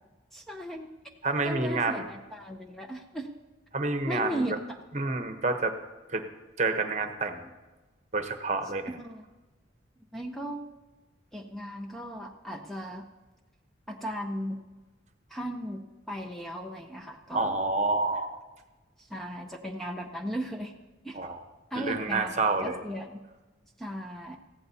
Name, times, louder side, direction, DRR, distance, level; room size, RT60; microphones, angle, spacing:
voice 1, 0.3-0.9 1.4-3.3 4.1-4.8 8.9-9.2 10.1-10.6 11.3-13.1 13.9-14.6 15.3-17.6 19.0-20.7 21.0-21.2 21.7-22.4 22.6-23.2 23.8-24.4, equal, ahead, 2 dB, 0.6 m, -36 dB
voice 2, 1.2-2.1 3.7-4.5 4.9-5.8 6.1-6.2 6.6-7.5 8.1-8.9 17.3-18.4 21.1-21.4 21.7-22.8, right 3 dB, 40° right, 7 dB, 0.9 m, -28 dB
19.0 x 15.0 x 2.8 m, 1.2 s
head